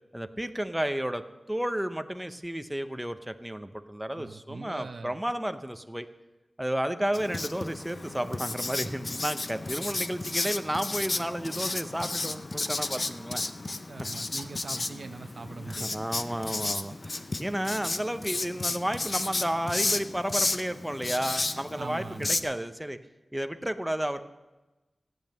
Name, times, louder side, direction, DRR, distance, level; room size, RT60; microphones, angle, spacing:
voice 1, 0.1-1.2 1.5-6.1 6.6-13.4 14.0-14.1 14.7-14.8 15.7-23.0 23.3-24.2, equal, 5° right, 8 dB, 0.7 m, -32 dB
voice 2, 4.2-5.2 9.9-10.2 13.9-16.4 21.8-22.5, right 4 dB, 70° right, 8 dB, 0.7 m, -42 dB
Writing, 7.1-22.4, left 2 dB, 40° left, 0.6 m, -33 dB
15.0 x 8.9 x 6.6 m, 1.1 s
wide cardioid pair, 105°, 0 cm